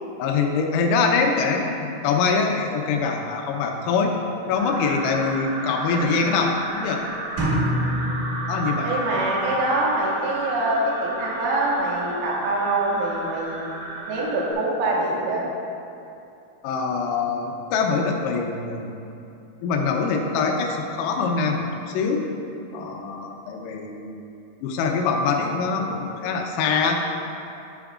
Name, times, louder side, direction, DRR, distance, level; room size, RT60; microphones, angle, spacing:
voice 1, 0.2-4.2 4.5-7.0 8.5-8.9 16.6-18.9 19.6-22.2 22.7-24.2 24.6-27.0, left 4 dB, 85° left, 2 dB, 3.5 m, -24 dB
sound 1, 4.5-14.5, right 1 dB, 75° right, 2.8 m, -32 dB
sound 2, 7.4-9.4, equal, 50° right, 2.5 m, -26 dB
voice 2, 8.8-13.7 14.1-15.5, right 2 dB, 90° right, -4 dB, 4.1 m, -24 dB
12.0 x 8.7 x 2.4 m, 2.8 s
omnidirectional pair, 5.9 m